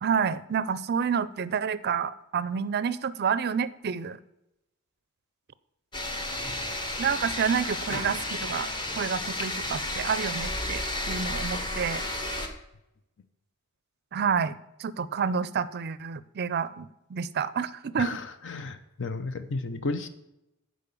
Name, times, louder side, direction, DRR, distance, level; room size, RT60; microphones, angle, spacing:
voice 1, 0.0-4.2 7.0-8.7 9.0-12.0 14.1-18.1, right 6 dB, 50° right, 17 dB, 0.5 m, -29 dB
sound 1, 5.9-12.5, left 1 dB, 20° left, 1.1 m, -32 dB
voice 2, 18.0-20.1, left 3 dB, 55° left, 10 dB, 0.7 m, -33 dB
10.5 x 5.1 x 6.9 m, 0.88 s
head